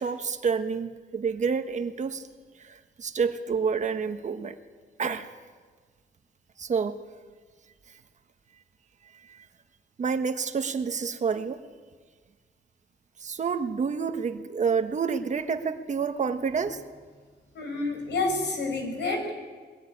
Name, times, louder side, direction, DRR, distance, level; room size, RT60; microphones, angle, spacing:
voice 1, 0.0-2.3 2.6-4.6 5.0-5.3 6.6-7.0 9.3-9.4 10.0-11.6 13.2-16.8, right 5 dB, 45° right, 8 dB, 1.3 m, -28 dB
voice 2, 17.5-19.3, left 3 dB, 85° left, 4 dB, 6.2 m, -29 dB
22.0 x 18.5 x 10.0 m, 1.5 s
wide cardioid pair, 170°, 18 cm